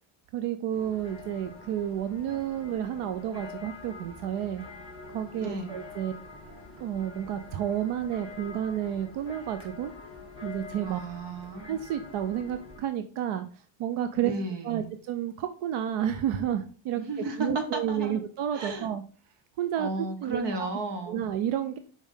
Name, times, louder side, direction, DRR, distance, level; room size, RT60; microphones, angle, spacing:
voice 1, 0.3-4.6 5.1-6.1 6.8-9.9 10.4-11.0 11.6-13.5 13.8-14.3 14.6-17.0 17.4-19.0 19.6-19.9 20.2-20.4 21.1-21.8, right 10 dB, 80° right, 9 dB, 0.7 m, -30 dB
sound 1, 0.7-12.8, left 3 dB, 10° right, 2.6 m, -46 dB
voice 2, 5.4-5.8 10.8-11.7 14.2-14.9 17.0-18.2 18.5-18.9 19.8-21.2, right 2 dB, 55° right, 6 dB, 1.2 m, -33 dB
5.2 x 5.2 x 3.7 m, 0.39 s
cardioid pair, 175°, 50 cm